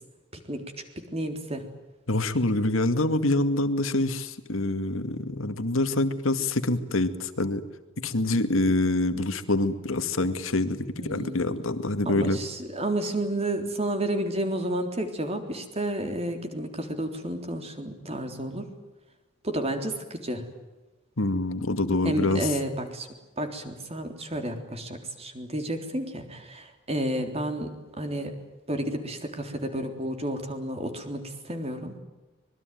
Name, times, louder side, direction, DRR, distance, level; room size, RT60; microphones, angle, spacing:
voice 1, 0.3-0.6 1.0-1.7 11.0-11.4 12.1-18.7 19.4-20.5 22.0-23.1 23.4-28.3 28.7-31.9, right 1 dB, 30° right, 6 dB, 3.7 m, -31 dB
voice 2, 2.1-7.7 8.0-12.4 21.2-22.5, left 2 dB, 90° left, 9 dB, 2.1 m, -26 dB
25.0 x 21.5 x 9.4 m, 1.1 s
head